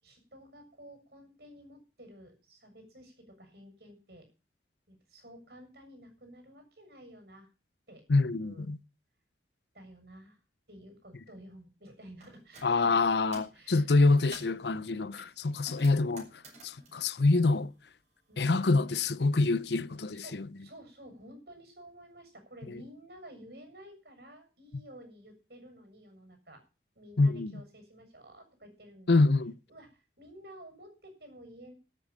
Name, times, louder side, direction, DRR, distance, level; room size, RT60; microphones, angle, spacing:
voice 1, 0.0-4.3 4.9-7.5 7.9-8.0 8.4-8.7 9.7-10.4 10.7-12.9 13.5-13.9 15.3-15.5 18.3-18.5 19.7-19.8 20.1-26.6 27.0-29.2 29.7-31.7, equal, 60° right, 7.3 m, -52 dB
voice 2, 8.1-8.8 12.6-16.3 16.6-17.7 18.4-20.5 22.7-22.8 27.2-27.5 29.1-29.5, left 3 dB, 75° left, 0.7 m, -26 dB
sound 1, 12.2-12.7 13.1-13.6 14.0-14.6 15.2-18.1 18.4-19.5, right 2 dB, 40° right, 7.4 m, -52 dB
13.5 x 8.6 x 8.8 m
head